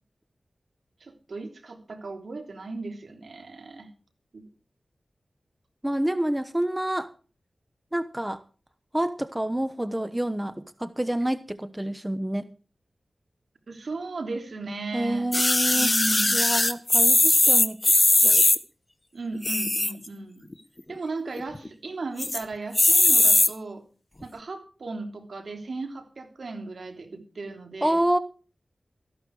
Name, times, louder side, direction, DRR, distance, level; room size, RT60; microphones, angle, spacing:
voice 1, 1.0-3.9 4.3-4.4 13.7-15.3 15.7-16.4 19.1-20.4 20.9-23.8 24.2-28.0, right 3 dB, 75° right, 3.2 m, -36 dB
voice 2, 5.8-7.1 7.9-8.4 8.9-12.5 14.9-15.9 16.3-17.8 18.2-18.4 27.8-28.2, right 1 dB, 15° right, 1.0 m, -28 dB
sound 1, 15.3-18.6 19.3-20.1 20.5-20.6 20.8-20.9 21.3-21.7 22.2-22.4 22.7-23.5 24.2-24.3, left 2 dB, 30° left, 1.3 m, -20 dB
14.5 x 12.0 x 4.8 m
cardioid pair, 40°, 0 cm